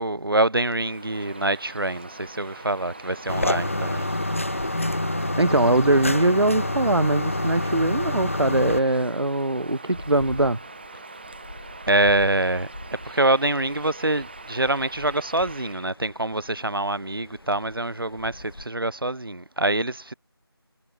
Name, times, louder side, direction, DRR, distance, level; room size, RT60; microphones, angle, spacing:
voice 1, 0.0-4.1 11.9-12.7 13.0-20.1, right 2 dB, 60° right, 1.3 m, -25 dB
sound 1, 0.6-18.7, left 1 dB, 65° left, 3.7 m, -46 dB
Bird vocalization bird call bird song, 0.6-15.9, right 3 dB, 25° right, 5.2 m, -43 dB
sound 2, 3.3-8.8, left 1 dB, 30° left, 0.7 m, -26 dB
voice 2, 5.4-10.6, right 2 dB, 80° right, 1.1 m, -21 dB
figure-of-eight pair, 170°, 13 cm